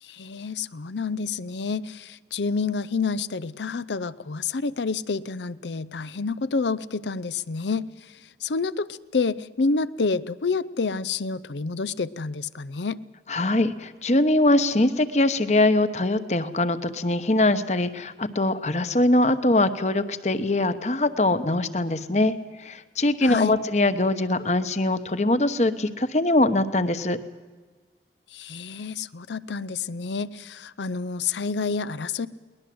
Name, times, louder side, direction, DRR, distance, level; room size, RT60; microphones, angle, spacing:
voice 1, 0.0-8.1 8.4-13.0 23.2-23.6 28.3-32.3, left 4 dB, 85° left, 16 dB, 0.6 m, -28 dB
voice 2, 13.3-27.2, left 2 dB, 40° left, 12 dB, 1.0 m, -22 dB
21.5 x 19.5 x 7.8 m, 1.3 s
head